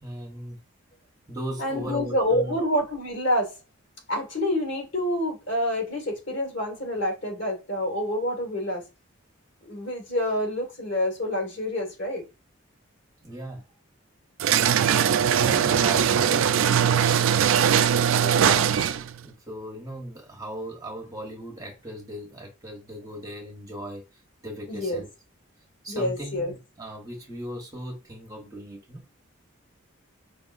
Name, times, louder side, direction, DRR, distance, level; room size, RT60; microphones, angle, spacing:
voice 1, 0.0-0.6 1.3-2.6 13.2-13.6 15.3-17.2 19.2-24.0 24.4-25.1 25.8-29.0, right 1 dB, 15° right, 1.1 m, -37 dB
voice 2, 1.6-3.5 4.1-8.8 9.6-12.2 18.2-18.7 24.7-25.0 25.9-26.5, left 1 dB, 55° left, 1.7 m, -27 dB
sound 1, 14.4-19.1, right 8 dB, 70° right, 0.3 m, -21 dB
5.1 x 3.5 x 2.5 m
head